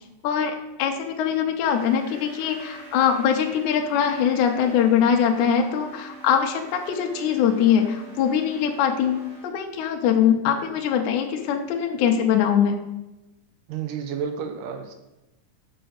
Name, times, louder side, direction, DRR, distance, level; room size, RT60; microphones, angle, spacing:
voice 1, 0.2-12.7, left 8 dB, 75° left, 3 dB, 1.9 m, -22 dB
sound 1, 1.7-9.5, right 3 dB, 50° right, 1.2 m, -45 dB
voice 2, 13.7-14.9, right 7 dB, 80° right, 7 dB, 2.0 m, -31 dB
6.1 x 4.8 x 6.4 m, 0.99 s
omnidirectional pair, 3.8 m